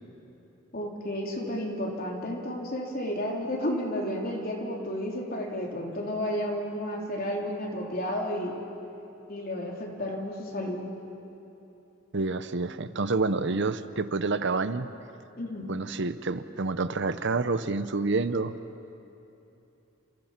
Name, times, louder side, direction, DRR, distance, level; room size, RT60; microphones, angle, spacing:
voice 1, 0.7-8.6 9.3-10.9 15.4-15.7, equal, 45° left, 0 dB, 3.7 m, -32 dB
voice 2, 12.1-14.9 15.7-18.5, right 3 dB, 60° right, 12 dB, 0.8 m, -28 dB
29.0 x 28.0 x 5.9 m, 2.9 s
head